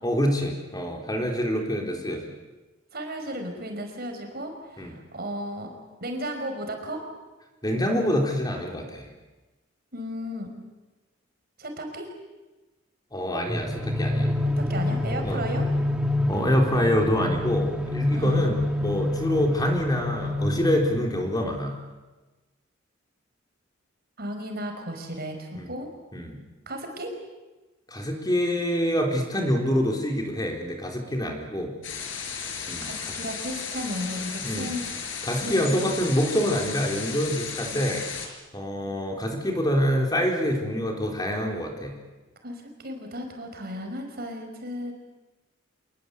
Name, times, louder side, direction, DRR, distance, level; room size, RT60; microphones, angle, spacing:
voice 1, 0.0-2.3 4.8-4.9 7.6-9.1 13.1-14.3 15.2-15.4 16.3-21.8 25.6-25.7 26.1-26.4 27.9-31.7 32.7-33.2 34.4-34.8 35.2-38.1 38.5-42.0, equal, 20° left, 2 dB, 4.0 m, -26 dB
voice 2, 2.9-5.7 6.0-7.0 9.9-10.5 11.6-12.1 14.6-15.6 18.1-18.5 24.2-25.9 26.7-27.1 32.8-34.8 35.4-35.8 42.4-44.9, equal, 55° right, 4 dB, 5.3 m, -34 dB
sound 1, 13.5-21.4, left 1 dB, 5° right, 1.6 m, -27 dB
sound 2, 31.8-38.3, left 6 dB, 70° left, 4.7 m, -34 dB
27.5 x 21.0 x 8.3 m, 1.2 s
head